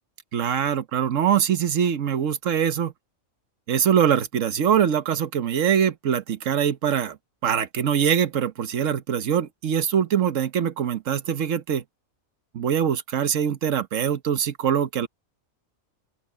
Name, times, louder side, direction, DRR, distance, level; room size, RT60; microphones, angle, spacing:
voice 1, 0.3-2.9 3.7-7.2 7.4-11.8 12.5-15.1, right 8 dB, 75° right, 1.3 m, -23 dB
open air
omnidirectional pair, 1.3 m